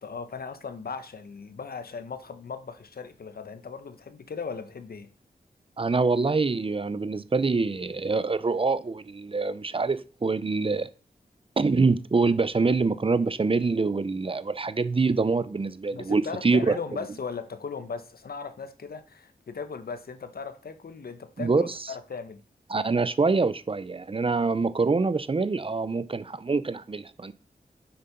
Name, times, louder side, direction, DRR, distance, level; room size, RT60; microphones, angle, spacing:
voice 1, 0.0-5.1 15.9-22.4, left 5 dB, 85° left, 1.3 m, -38 dB
voice 2, 5.8-10.9 11.6-16.8 21.4-21.7 22.7-27.3, right 4 dB, 35° right, 0.7 m, -25 dB
10.0 x 7.8 x 5.3 m
wide cardioid pair, 120°, 15 cm